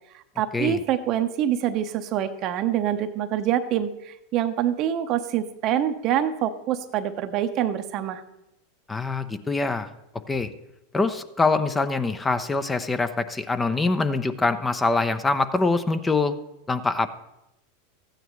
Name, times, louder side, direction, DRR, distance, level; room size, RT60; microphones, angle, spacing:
voice 1, 0.1-8.2, right 10 dB, 45° right, 10 dB, 0.8 m, -25 dB
voice 2, 8.9-9.9 10.3-10.5 10.9-16.4 16.7-17.1, left 3 dB, 15° left, 10 dB, 0.6 m, -24 dB
14.0 x 9.0 x 3.1 m, 0.88 s
hypercardioid pair, 95°, 0 cm